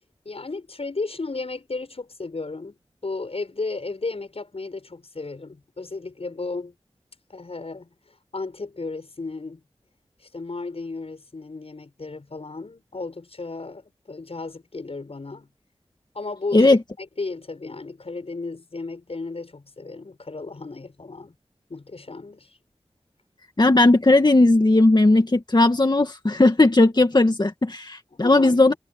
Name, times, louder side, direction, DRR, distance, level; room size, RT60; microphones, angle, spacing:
voice 1, 0.2-2.8 3.0-6.7 7.3-7.9 8.3-9.6 10.2-15.5 16.1-21.3 21.7-22.5 28.1-28.8, left 3 dB, 65° left, 7.6 m, -34 dB
voice 2, 23.6-28.7, left 2 dB, 40° left, 2.1 m, -17 dB
cardioid pair, 45°, 11 cm